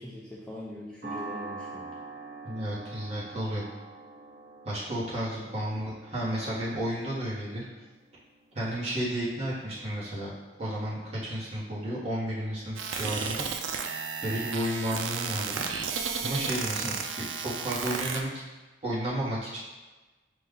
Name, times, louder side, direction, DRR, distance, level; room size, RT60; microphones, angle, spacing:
voice 1, 0.0-2.0 5.4-5.5 16.8-16.9, left 1 dB, 5° left, -7 dB, 0.4 m, -42 dB
sound 1, 1.0-9.5, right 3 dB, 55° right, 0.7 m, -45 dB
voice 2, 2.4-3.7 4.6-7.6 8.5-10.3 10.6-13.4 14.2-15.7 16.2-18.4 18.8-19.6, equal, 35° right, -8 dB, 1.3 m, -32 dB
sound 2, 12.8-18.2, right 6 dB, 80° right, 0.4 m, -33 dB
5.1 x 2.5 x 3.7 m, 1.2 s
head